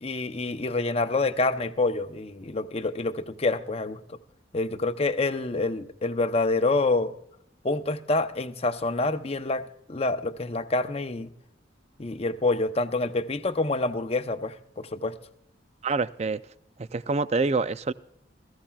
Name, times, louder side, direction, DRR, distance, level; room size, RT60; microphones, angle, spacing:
voice 1, 0.0-4.2 4.5-7.2 7.6-11.3 12.0-15.2, left 2 dB, 35° left, 9 dB, 0.7 m, -27 dB
voice 2, 15.8-16.4 16.8-17.9, right 3 dB, 35° right, 14 dB, 0.4 m, -26 dB
20.5 x 15.0 x 2.4 m, 0.71 s
head